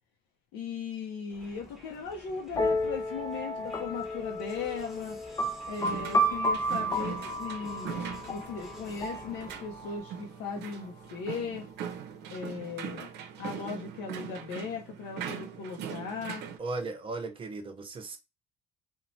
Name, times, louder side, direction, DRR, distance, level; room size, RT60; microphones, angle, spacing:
voice 1, 0.5-5.2 5.7-7.9 8.3-11.7 12.3-13.1 13.4-16.4, left 5 dB, 90° left, 0.5 m, -38 dB
Crowd, 1.3-10.1, equal, ahead, 0.8 m, -52 dB
sound 1, 2.5-10.1, equal, 20° left, 0.4 m, -32 dB
sound 2, 5.8-16.6, right 8 dB, 80° right, 0.5 m, -41 dB
voice 2, 16.6-18.2, right 3 dB, 30° right, 0.5 m, -36 dB
3.0 x 2.1 x 2.5 m
cardioid pair, 110°, 17 cm